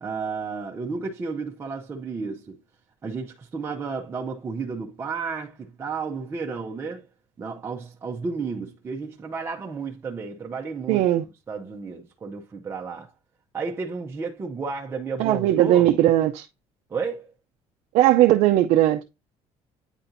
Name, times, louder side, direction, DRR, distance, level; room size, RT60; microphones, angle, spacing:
voice 1, 0.0-2.6 3.0-7.1 7.4-13.1 13.5-15.9 16.9-17.3, right 4 dB, 20° right, 0.7 m, -32 dB
voice 2, 10.9-11.2 15.2-16.4 17.9-19.0, right 13 dB, 70° right, 0.5 m, -18 dB
8.9 x 4.2 x 2.6 m
cardioid pair, 145°, 11 cm